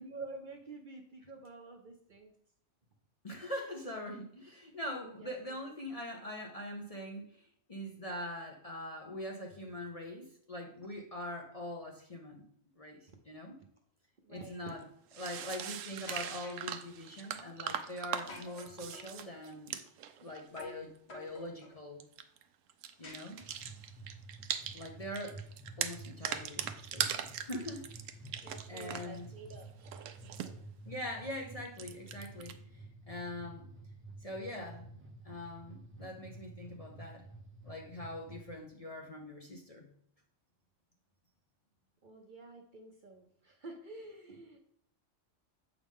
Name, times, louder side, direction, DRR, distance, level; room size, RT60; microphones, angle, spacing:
voice 1, 0.0-2.3 5.2-5.3 14.2-14.6 28.4-29.7 30.2-30.5 42.0-44.6, right 3 dB, 45° right, 3 dB, 0.8 m, -49 dB
voice 2, 3.2-12.5 12.8-13.6 14.3-14.8 15.2-19.8 20.2-22.1 23.0-23.4 24.7-25.4 25.8-27.9 28.7-29.3 30.8-33.7 34.2-34.9 35.2-37.2 37.6-39.9, left 1 dB, 35° left, 0 dB, 0.7 m, -43 dB
sound 1, 14.7-14.8 15.1-20.7 22.0-22.4 22.7-24.9 25.1-29.2 29.5-30.5 31.7-32.5, right 9 dB, 75° right, 0.9 m, -40 dB
sound 2, 16.1-16.7 18.3-19.2 20.6-20.8 21.1-21.8 23.0-23.8, left 2 dB, 55° left, 1.4 m, -50 dB
sound 3, 23.4-38.5, right 2 dB, 15° right, 0.5 m, -51 dB
7.3 x 5.0 x 3.6 m, 0.68 s
omnidirectional pair, 1.3 m